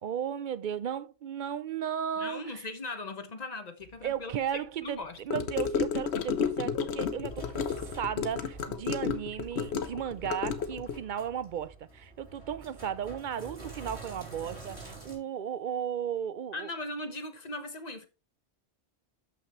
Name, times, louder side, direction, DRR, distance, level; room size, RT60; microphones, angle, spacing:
voice 1, 0.0-2.7 4.0-7.7 8.0-16.7, right 9 dB, 55° right, 0.6 m, -35 dB
voice 2, 2.2-4.3 4.8-5.2 16.5-18.1, left 2 dB, 40° left, 1.2 m, -39 dB
Gurgling / Car passing by / Sink (filling or washing), 5.3-11.0, left 6 dB, 75° left, 1.0 m, -32 dB
Sink (filling or washing), 6.3-15.2, right 2 dB, 80° right, 4.1 m, -47 dB
12.5 x 5.8 x 3.1 m
omnidirectional pair, 1.1 m